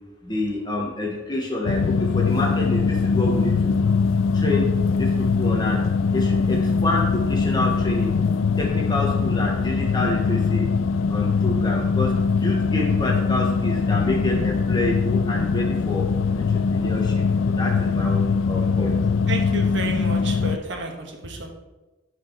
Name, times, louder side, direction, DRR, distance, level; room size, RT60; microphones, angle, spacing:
voice 1, 0.2-3.8 4.3-5.8 6.1-8.1 8.6-10.7 11.1-12.1 12.4-16.1 16.4-19.0, left 1 dB, 20° left, -1 dB, 1.1 m, -28 dB
sound 1, 1.7-20.6, left 5 dB, 80° left, 0.4 m, -22 dB
voice 2, 19.3-21.5, right 2 dB, 65° right, 3 dB, 1.3 m, -31 dB
11.0 x 4.5 x 4.5 m, 1.1 s
head